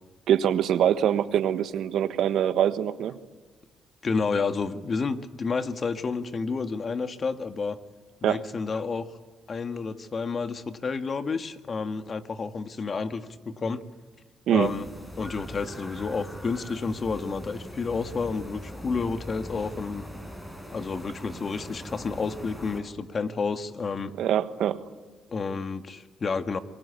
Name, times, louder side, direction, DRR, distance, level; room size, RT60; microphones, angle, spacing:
voice 1, 0.3-3.2 8.2-8.4 14.5-14.7 24.2-24.8, right 10 dB, 75° right, 11 dB, 1.4 m, -24 dB
voice 2, 4.0-7.8 8.2-9.1 9.5-13.8 14.5-14.9 15.2-20.0 20.7-24.1 25.3-26.6, left 4 dB, 40° left, 8 dB, 1.8 m, -30 dB
sound 1, 14.6-22.8, equal, 5° left, 6.4 m, -41 dB
27.0 x 22.5 x 8.4 m, 1.3 s
cardioid pair, 90°, 0 cm